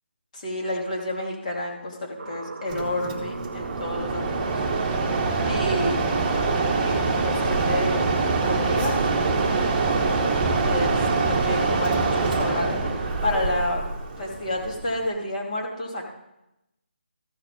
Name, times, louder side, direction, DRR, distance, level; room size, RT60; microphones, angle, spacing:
voice 1, 0.3-4.4 5.4-6.1 6.8-8.2 8.4-9.0 10.6-11.0 11.3-13.8 14.2-16.1, left 1 dB, 40° left, -1 dB, 2.6 m, -29 dB
sound 1, 2.2-12.5, right 3 dB, 65° right, 0.8 m, -36 dB
Mechanisms, 2.7-15.1, right 3 dB, 20° right, 1.2 m, -25 dB
14.0 x 6.4 x 3.8 m, 0.87 s
figure-of-eight pair, 160°, 6 cm